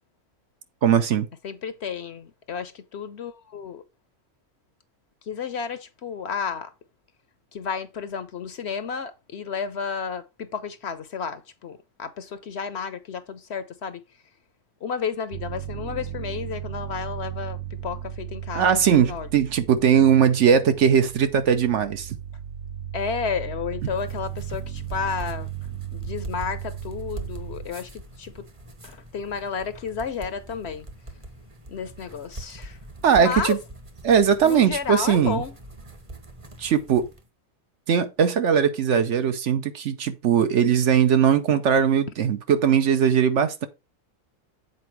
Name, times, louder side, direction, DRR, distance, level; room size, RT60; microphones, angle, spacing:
voice 1, 0.8-1.3 18.5-22.2 33.0-33.6 34.0-35.4 36.6-37.1 37.9-43.7, right 8 dB, 60° right, 1.0 m, -20 dB
voice 2, 1.4-3.8 5.3-6.7 7.5-14.0 14.8-19.3 22.9-25.5 25.9-28.5 28.8-30.9 31.7-32.8 33.1-33.6 34.4-35.5, left 6 dB, 55° left, 0.9 m, -32 dB
sound 1, 15.3-27.7, right 10 dB, 85° right, 1.1 m, -36 dB
sound 2, 23.8-37.3, right 1 dB, 25° right, 1.0 m, -42 dB
7.8 x 4.6 x 4.5 m
omnidirectional pair, 1.5 m